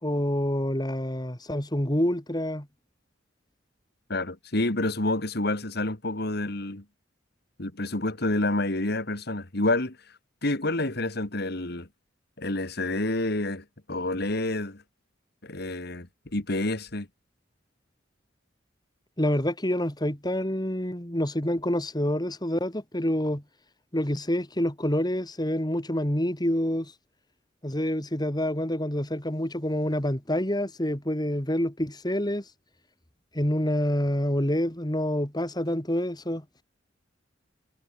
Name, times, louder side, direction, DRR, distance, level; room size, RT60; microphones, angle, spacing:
voice 1, 0.0-2.7 19.2-23.4 23.9-26.9 27.6-32.4 33.3-36.4, left 1 dB, 20° left, 3.5 m, -27 dB
voice 2, 4.1-6.8 7.6-10.0 10.4-11.9 12.4-14.8 15.4-17.1, left 2 dB, 55° left, 2.4 m, -28 dB
head